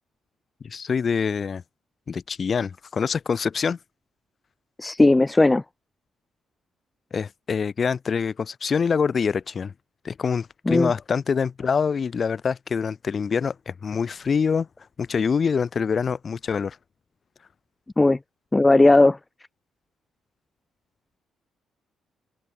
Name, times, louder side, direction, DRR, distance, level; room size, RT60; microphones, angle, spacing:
voice 1, 0.6-1.6 2.1-3.8 7.1-9.7 10.0-14.7 15.0-16.8, left 6 dB, 45° left, 2.1 m, -25 dB
voice 2, 4.8-5.6 10.7-10.9 18.0-18.2 18.5-19.2, left 2 dB, 15° left, 0.4 m, -17 dB
cardioid pair, 90°, 0 cm